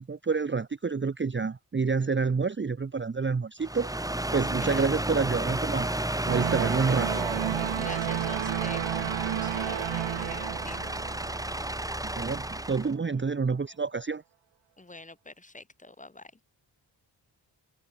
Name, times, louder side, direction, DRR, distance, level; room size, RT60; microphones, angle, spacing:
voice 1, 0.0-3.9 4.3-5.9 6.3-7.3 12.0-14.2, right 5 dB, 25° right, 1.0 m, -28 dB
sound 1, 3.6-12.9, right 1 dB, 10° right, 1.8 m, -32 dB
voice 2, 4.6-4.9 7.8-11.0 14.8-16.3, left 2 dB, 15° left, 3.1 m, -45 dB
sound 2, 6.3-12.3, right 13 dB, 80° right, 0.7 m, -32 dB
wide cardioid pair, 170°, 45 cm